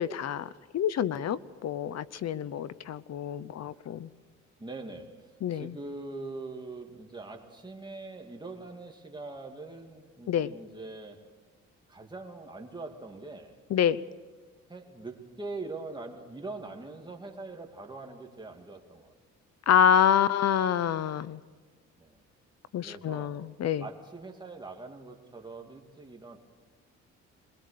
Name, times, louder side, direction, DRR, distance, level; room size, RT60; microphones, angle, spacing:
voice 1, 0.0-4.1 5.4-5.7 10.3-10.5 13.7-14.0 19.7-21.4 22.7-23.8, left 9 dB, 60° left, 18 dB, 0.8 m, -27 dB
voice 2, 4.6-11.2 11.9-13.6 14.7-19.1 22.0-22.2 22.8-23.4 23.8-26.4, right 3 dB, 15° right, 2 dB, 2.6 m, -42 dB
23.0 x 21.5 x 6.7 m, 1.5 s
cardioid pair, 90°, 30 cm